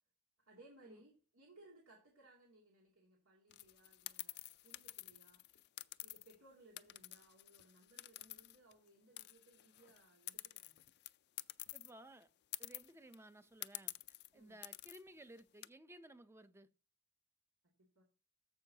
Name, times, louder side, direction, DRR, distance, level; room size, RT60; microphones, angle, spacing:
voice 1, 0.4-5.5 6.0-10.8 14.3-14.6 18.0-18.1, right 2 dB, 80° right, 2.5 m, -64 dB
sound 1, 3.5-6.4 6.8-8.9 9.2-11.9 12.2-12.3 12.5-13.1 13.6-14.3 14.6-15.0 15.4-15.7, left 16 dB, 50° left, 0.4 m, -49 dB
voice 2, 11.7-12.3 12.6-16.7, right 1 dB, 10° right, 0.6 m, -58 dB
14.0 x 5.5 x 2.8 m
head